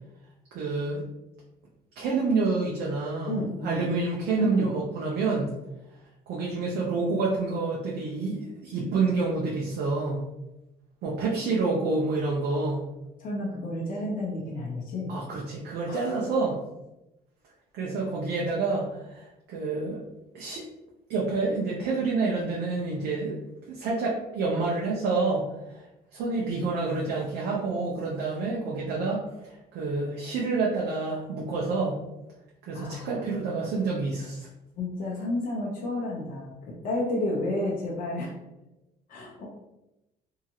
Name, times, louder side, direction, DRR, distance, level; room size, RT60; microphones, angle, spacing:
voice 1, 0.5-1.0 2.0-5.5 6.3-10.2 11.0-12.8 15.1-16.6 17.7-20.0 20.3-20.6 21.1-23.4 23.7-25.4 25.7-25.8 26.1-29.2 29.5-32.0 32.7-34.5, right 3 dB, 75° right, -3 dB, 0.6 m, -28 dB
voice 2, 3.3-3.9 4.4-4.7 13.2-15.1 15.9-16.2 32.7-33.4 34.8-38.3 39.1-39.5, left 1 dB, 55° left, -3 dB, 0.8 m, -31 dB
2.8 x 2.4 x 2.8 m, 0.94 s
cardioid pair, 110°, 17 cm